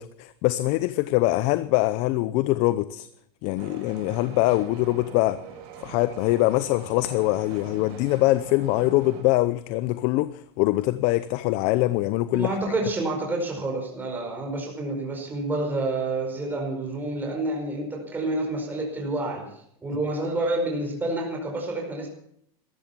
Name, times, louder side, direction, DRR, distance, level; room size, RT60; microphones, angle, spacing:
voice 1, 0.0-3.1 3.4-5.4 5.8-12.6, left 18 dB, 55° left, 0.7 m, -23 dB
sound 1, 3.6-9.2, right 5 dB, 60° right, 6.1 m, -43 dB
voice 2, 12.3-19.5 19.8-22.1, right 2 dB, 15° right, 4.9 m, -28 dB
14.0 x 14.0 x 7.1 m
supercardioid pair, 135°, 14 cm